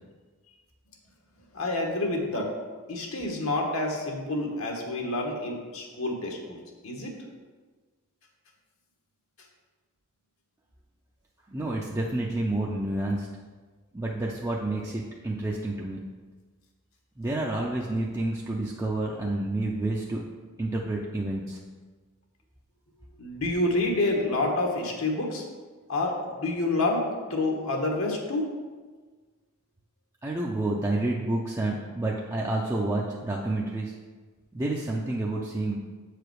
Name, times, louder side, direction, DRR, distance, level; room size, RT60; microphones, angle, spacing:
voice 1, 1.5-2.6 2.9-6.6 6.8-7.2 23.2-25.4 25.9-28.5, left 2 dB, 65° left, 0 dB, 1.3 m, -28 dB
voice 2, 11.5-13.3 13.9-16.0 17.2-20.2 20.6-21.6 30.2-33.9 34.5-35.8, right 2 dB, 15° right, -3 dB, 0.5 m, -29 dB
7.9 x 5.0 x 4.7 m, 1.4 s
head